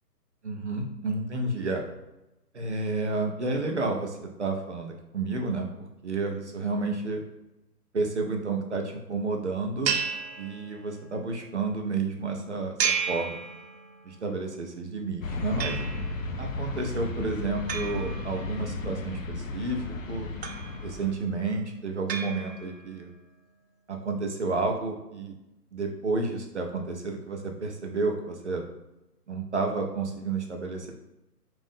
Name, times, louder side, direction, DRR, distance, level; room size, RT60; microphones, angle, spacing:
voice 1, 0.4-1.8 2.5-7.2 7.9-10.0 10.4-13.4 14.0-15.8 16.4-20.3 20.8-23.1 23.9-25.3 25.7-28.7 29.3-30.9, right 3 dB, 45° right, 2 dB, 0.4 m, -31 dB
sound 1, 9.8-11.1 12.8-14.1 15.6-16.3 17.7-18.8 20.4-21.1 22.1-23.0, right 6 dB, 90° right, 0.6 m, -33 dB
sound 2, 15.2-21.1, left 3 dB, 55° left, 0.5 m, -34 dB
3.6 x 2.5 x 3.7 m, 0.94 s
hypercardioid pair, 160°, 49 cm